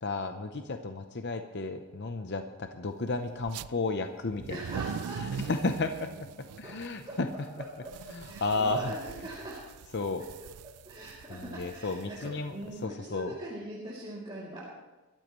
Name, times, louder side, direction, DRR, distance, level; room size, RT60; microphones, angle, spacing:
voice 1, 0.0-4.9 5.2-6.1 6.6-7.3 8.1-8.9 9.9-10.2 11.3-12.6 12.8-13.3, left 3 dB, 50° left, 7 dB, 0.7 m, -33 dB
sound 1, 3.4-3.7 4.3-12.8, right 7 dB, 90° right, 0.4 m, -42 dB
voice 2, 4.5-5.2 6.6-6.7 7.1-7.9 8.2-9.6 10.8-14.6, right 1 dB, 20° right, -8 dB, 2.9 m, -42 dB
23.0 x 13.5 x 3.2 m, 1.1 s
head